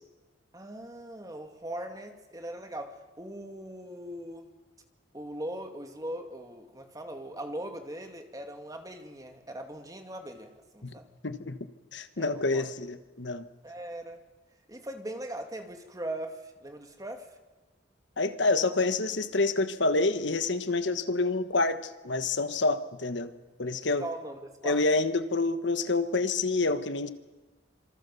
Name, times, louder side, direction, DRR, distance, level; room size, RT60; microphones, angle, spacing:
voice 1, 0.5-4.5 5.1-11.1 12.2-12.7 13.6-14.2 14.7-17.3 24.0-24.8, right 1 dB, 20° right, 5 dB, 2.3 m, -40 dB
voice 2, 11.2-11.6 11.9-13.4 18.2-23.3 23.6-24.0 24.6-27.1, left 3 dB, 75° left, 11 dB, 1.3 m, -27 dB
26.5 x 24.5 x 7.0 m, 1.2 s
head